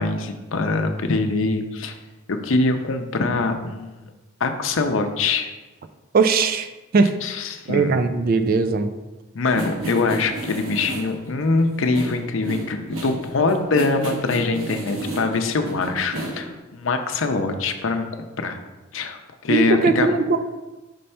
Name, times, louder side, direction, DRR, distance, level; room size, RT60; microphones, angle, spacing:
voice 1, 0.0-1.9 2.3-4.0 4.4-5.5 7.2-7.9 9.3-18.1 18.4-18.6 18.9-20.1, left 3 dB, 65° left, 6 dB, 0.6 m, -23 dB
voice 2, 6.1-6.7 6.9-7.1 7.7-8.9 19.5-20.4, right 4 dB, 45° right, 8 dB, 0.4 m, -19 dB
sound 1, 9.4-16.6, right 1 dB, 70° right, 1.1 m, -32 dB
5.3 x 3.3 x 5.5 m, 1.1 s
head